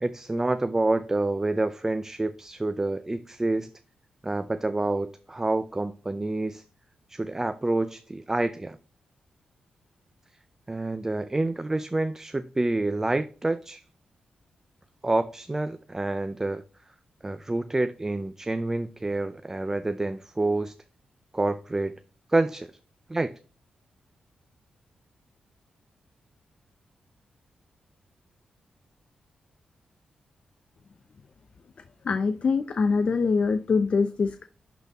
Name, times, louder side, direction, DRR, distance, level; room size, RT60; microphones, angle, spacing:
voice 1, 0.0-3.7 4.2-6.6 7.1-8.8 10.7-13.8 15.0-16.6 17.2-20.7 21.3-21.9 22.3-22.7 23.1-23.3, right 2 dB, 20° right, 0.5 m, -28 dB
voice 2, 32.0-34.5, left 4 dB, 55° left, 0.6 m, -24 dB
11.5 x 4.1 x 3.6 m
cardioid pair, 85°, 2 cm